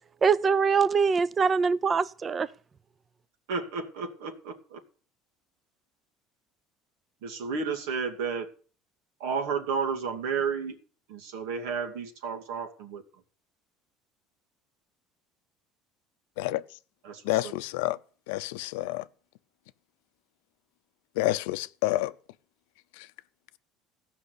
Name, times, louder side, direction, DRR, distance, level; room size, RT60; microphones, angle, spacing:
voice 1, 0.2-2.5, right 5 dB, 25° right, 0.5 m, -23 dB
voice 2, 3.5-4.8 7.2-8.5 9.2-10.8 11.1-13.0 17.0-17.5, right 5 dB, 90° right, 2.4 m, -32 dB
voice 3, 17.2-18.0 18.3-19.1 21.2-22.1 23.0-23.1, left 18 dB, 90° left, 0.7 m, -28 dB
16.0 x 5.9 x 8.3 m
cardioid pair, 130°, 0 cm